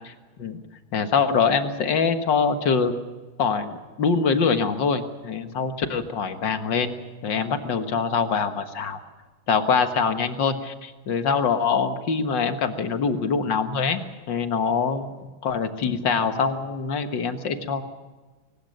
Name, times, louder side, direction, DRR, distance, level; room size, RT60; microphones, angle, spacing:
voice 1, 0.9-2.9 3.4-6.9 7.2-9.0 9.5-14.0 14.3-17.8, left 5 dB, 65° left, 8 dB, 2.1 m, -24 dB
23.0 x 20.0 x 6.5 m, 1.3 s
omnidirectional pair, 2.2 m